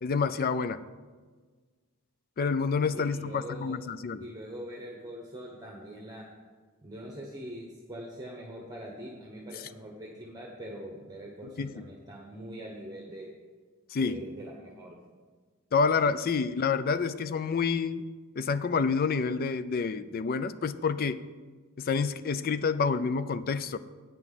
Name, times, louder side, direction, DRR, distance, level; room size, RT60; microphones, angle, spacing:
voice 1, 0.0-0.8 2.4-4.2 11.4-11.8 13.9-14.2 15.7-18.1 18.4-21.2 21.8-23.8, left 5 dB, 40° left, 14 dB, 0.4 m, -28 dB
voice 2, 2.9-3.8 4.2-6.3 6.8-13.3 14.0-15.0, equal, 15° right, -1 dB, 1.1 m, -43 dB
9.0 x 6.1 x 7.5 m, 1.5 s
head